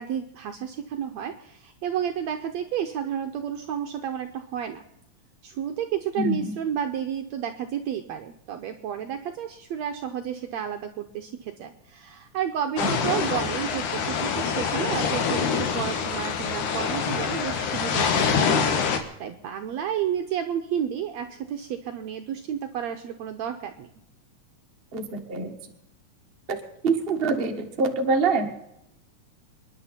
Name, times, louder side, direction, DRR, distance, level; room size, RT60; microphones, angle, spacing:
voice 1, 0.0-4.8 5.4-18.5 18.9-23.9, right 9 dB, 75° right, 5 dB, 1.7 m, -31 dB
voice 2, 6.2-6.5 12.8-12.9 24.9-25.5 26.5-26.6 26.8-28.5, right 3 dB, 35° right, 2 dB, 0.9 m, -25 dB
sound 1, 12.8-19.0, left 6 dB, 70° left, 2.8 m, -25 dB
28.5 x 10.5 x 4.3 m, 0.82 s
omnidirectional pair, 3.9 m